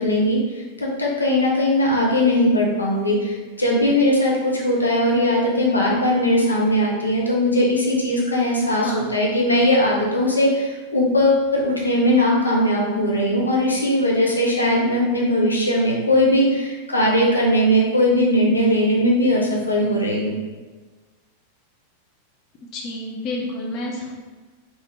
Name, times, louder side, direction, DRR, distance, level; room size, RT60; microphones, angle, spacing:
voice 1, 0.0-20.3, left 1 dB, 80° left, -3 dB, 0.7 m, -19 dB
voice 2, 8.7-9.1 22.7-24.2, left 2 dB, 35° left, -1 dB, 0.7 m, -30 dB
3.6 x 2.7 x 3.3 m, 1.3 s
figure-of-eight pair, 90°, 0 cm